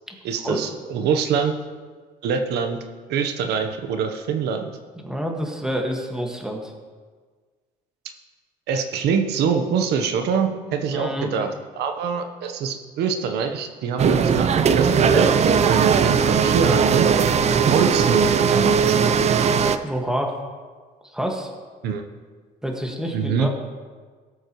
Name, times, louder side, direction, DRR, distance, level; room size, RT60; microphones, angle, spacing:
voice 1, 0.2-1.5 2.2-2.8 3.1-4.7 8.7-11.5 11.8-17.1 17.6-19.0 21.8-22.0 23.1-23.5, right 6 dB, 75° right, 5 dB, 1.0 m, -24 dB
voice 2, 5.0-6.7 10.9-11.3 19.8-20.4 21.1-21.5 22.6-23.5, equal, 5° right, 1 dB, 1.7 m, -27 dB
sound 1, 14.0-19.8, right 6 dB, 40° right, 0.6 m, -18 dB
18.5 x 7.9 x 3.1 m, 1.5 s
cardioid pair, 110°, 17 cm